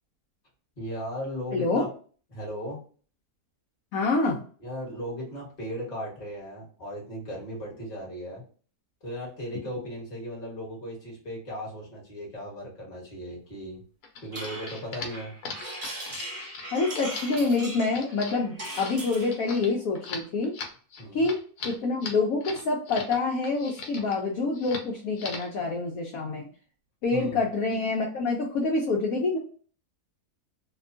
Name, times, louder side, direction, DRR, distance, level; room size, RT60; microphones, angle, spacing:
voice 1, 0.8-1.9 2.3-2.8 4.6-8.4 9.0-13.8 14.2-15.3 21.0-21.3 27.1-27.4, equal, 30° left, -3 dB, 1.2 m, -37 dB
voice 2, 1.5-1.8 3.9-4.4 16.7-20.5 21.1-21.4 21.6-26.5 27.0-29.4, left 3 dB, 70° left, -1 dB, 1.0 m, -26 dB
Some paper sounds, 14.0-23.2 23.4-24.2 24.5-24.9 25.2-25.6, left 4 dB, 90° left, 1.2 m, -39 dB
sound 1, 14.3-19.4, right 1 dB, 35° right, 0.6 m, -39 dB
2.9 x 2.2 x 2.5 m, 0.42 s
omnidirectional pair, 1.6 m